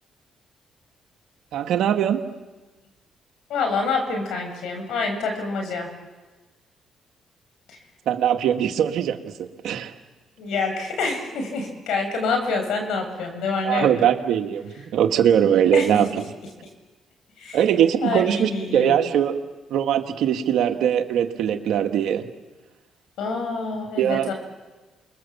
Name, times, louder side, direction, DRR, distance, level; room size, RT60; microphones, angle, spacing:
voice 1, 1.5-2.2 8.1-9.9 13.6-16.1 17.5-19.4 19.7-22.3 24.0-24.3, right 9 dB, 80° right, 6 dB, 1.8 m, -21 dB
voice 2, 3.5-5.9 7.7-7.8 10.4-14.0 15.7-16.0 17.4-17.6 18.0-19.0 23.2-24.3, left 4 dB, 80° left, 4 dB, 6.9 m, -27 dB
28.5 x 21.5 x 7.3 m, 1.2 s
supercardioid pair, 65°, 0 cm